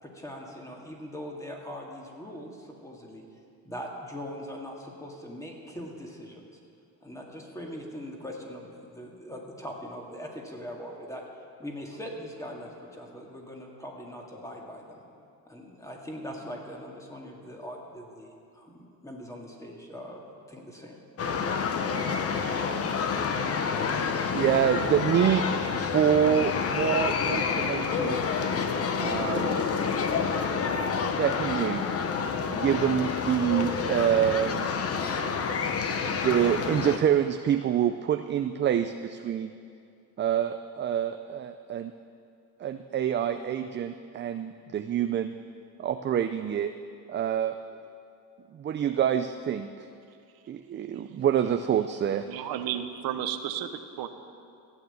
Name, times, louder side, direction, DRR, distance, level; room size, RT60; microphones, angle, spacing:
voice 1, 0.0-3.2 3.6-6.4 7.0-11.2 11.6-15.0 15.5-21.0, equal, 10° left, -1 dB, 2.0 m, -41 dB
sound 1, 21.2-37.0, left 5 dB, 40° left, 1.0 m, -28 dB
voice 2, 24.3-28.2 29.0-29.6 31.1-31.8 32.5-34.7 35.3-35.7 36.0-39.6 40.2-41.9 42.6-45.3 45.8-46.7 47.1-47.6 48.5-49.7 50.5-52.3, right 9 dB, 35° right, 8 dB, 0.4 m, -26 dB
voice 3, 52.3-53.7 54.0-54.1, right 10 dB, 85° right, 8 dB, 1.0 m, -32 dB
14.5 x 9.3 x 8.0 m, 2.5 s
cardioid pair, 140°, 35 cm